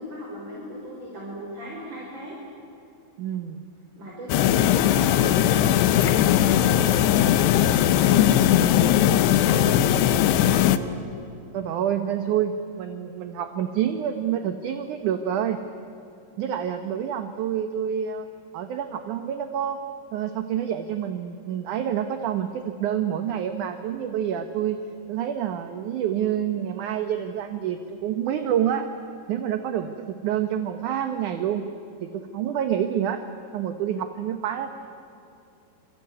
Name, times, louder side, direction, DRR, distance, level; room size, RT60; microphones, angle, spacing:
voice 1, 0.0-2.4 3.9-10.9, right 1 dB, 25° right, -3 dB, 5.4 m, -37 dB
voice 2, 3.2-3.6 11.5-15.6 16.4-18.3 18.5-19.8 20.1-24.8 25.1-28.9 29.3-31.7 32.0-33.2 33.5-34.7, right 9 dB, 65° right, 8 dB, 2.0 m, -27 dB
sound 1, 4.3-10.8, left 11 dB, 85° left, 3.0 m, -19 dB
27.0 x 23.0 x 9.7 m, 2.7 s
omnidirectional pair, 4.8 m